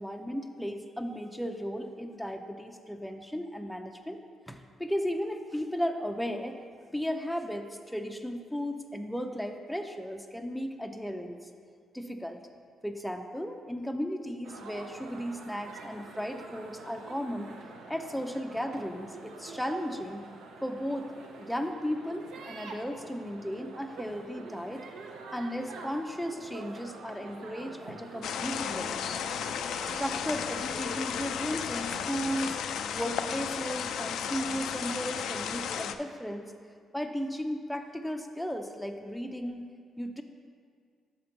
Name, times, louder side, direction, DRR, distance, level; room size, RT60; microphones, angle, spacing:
voice 1, 0.0-4.2 4.5-6.6 6.9-11.5 11.9-12.4 12.8-17.5 17.9-20.3 20.6-21.1 21.4-24.8 25.3-29.1 30.0-32.6 32.9-36.5 36.9-39.6 40.0-40.2, equal, ahead, 4 dB, 0.4 m, -35 dB
sound 1, 14.4-31.0, right 3 dB, 85° right, 0.7 m, -47 dB
sound 2, 28.2-35.9, left 7 dB, 75° left, 0.3 m, -34 dB
5.8 x 5.1 x 5.8 m, 2.1 s
cardioid pair, 90°, 0 cm